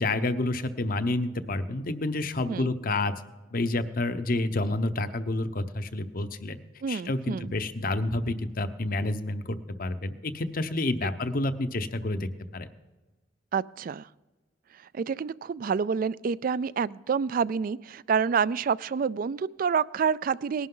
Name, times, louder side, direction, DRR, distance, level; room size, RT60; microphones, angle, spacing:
voice 1, 0.0-3.1 3.5-6.6 6.9-12.7, left 2 dB, 50° left, 11 dB, 0.8 m, -29 dB
voice 2, 6.8-7.5 13.5-14.1 14.7-20.7, right 6 dB, 45° right, 19 dB, 0.3 m, -28 dB
19.5 x 11.5 x 3.8 m, 1.2 s
head